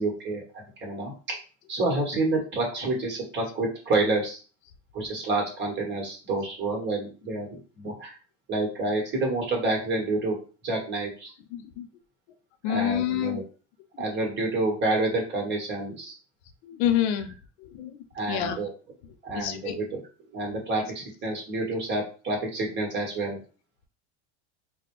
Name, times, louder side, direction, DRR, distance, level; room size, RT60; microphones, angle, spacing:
voice 1, 0.0-1.4 1.7-4.4 4.9-7.5 7.8-8.2 8.5-10.4 10.6-11.3 12.7-13.4 14.0-16.1 18.1-18.7 19.2-20.0 20.3-23.4, right 2 dB, 30° right, -1 dB, 1.4 m, -28 dB
voice 2, 11.5-11.9 12.6-13.4 16.6-17.3 17.6-18.0 18.3-18.6 19.3-19.8, left 10 dB, 70° left, 7 dB, 0.6 m, -27 dB
4.1 x 2.2 x 3.0 m, 0.37 s
supercardioid pair, 140°, 35 cm